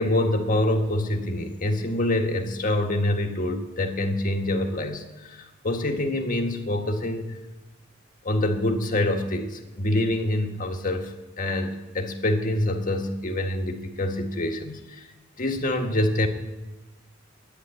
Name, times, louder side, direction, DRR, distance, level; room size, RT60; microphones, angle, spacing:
voice 1, 0.0-7.4 8.2-15.0 15.4-16.3, left 1 dB, 45° left, 3 dB, 1.6 m, -26 dB
11.0 x 10.0 x 10.0 m, 1.1 s
head